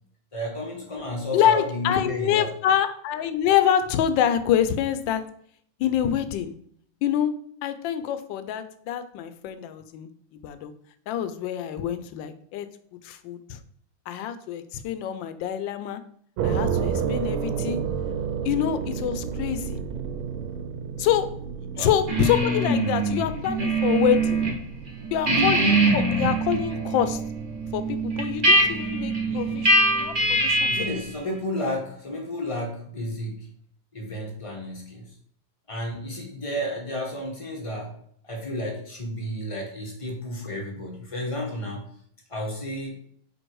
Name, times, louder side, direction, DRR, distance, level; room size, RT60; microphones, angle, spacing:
voice 1, 0.3-2.5 21.7-21.9 29.3-29.7 30.7-33.5 33.9-35.1 35.7-38.0 38.2-41.9 42.3-43.0, left 1 dB, 40° left, 1 dB, 0.4 m, -32 dB
voice 2, 1.3-5.2 5.8-6.5 7.0-7.3 7.6-10.7 11.1-12.7 13.0-13.6 14.1-16.0 16.4-17.8 18.4-19.8 21.0-21.3 21.8-24.4 25.1-27.2 27.7-31.0, left 10 dB, 70° left, 10 dB, 1.2 m, -26 dB
sound 1, 16.4-31.2, right 7 dB, 80° right, 1.4 m, -33 dB
sound 2, 22.1-24.6 24.9-31.0, right 1 dB, 35° right, 0.8 m, -23 dB
5.3 x 3.8 x 4.6 m, 0.64 s
omnidirectional pair, 2.4 m